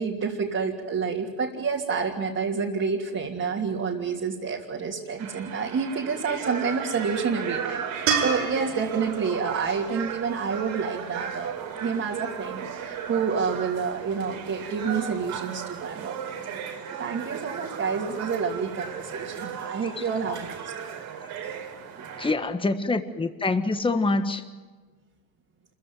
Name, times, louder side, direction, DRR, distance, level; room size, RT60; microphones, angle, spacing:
voice 1, 0.0-11.5 11.8-16.2 16.6-20.9, right 5 dB, 40° right, -2 dB, 3.1 m, -29 dB
sound 1, 5.2-22.3, right 7 dB, 70° right, 3.9 m, -36 dB
sound 2, 8.1-11.3 14.6-14.7, right 7 dB, 85° right, 7.3 m, -31 dB
voice 2, 22.2-24.4, left 3 dB, 15° left, 8 dB, 1.6 m, -25 dB
27.0 x 15.5 x 9.5 m, 1.4 s
supercardioid pair, 85°, 37 cm